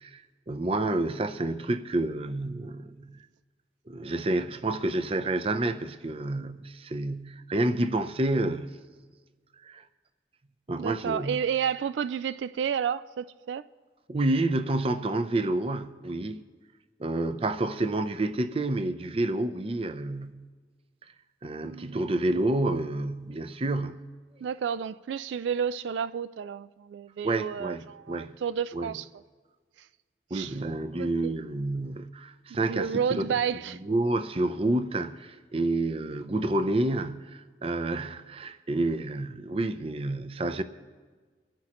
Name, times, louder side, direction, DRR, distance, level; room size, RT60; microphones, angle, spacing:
voice 1, 0.0-3.2 3.9-8.8 9.6-9.8 10.7-11.4 14.1-16.4 17.0-20.3 21.4-24.0 27.2-28.3 28.7-28.9 30.3-33.2 33.8-40.6, right 2 dB, 30° right, 0.5 m, -29 dB
voice 2, 10.8-13.6 21.6-22.2 24.4-29.1 30.3-30.6 31.0-31.4 32.7-33.8, right 7 dB, 85° right, 0.3 m, -31 dB
24.5 x 10.5 x 3.0 m
head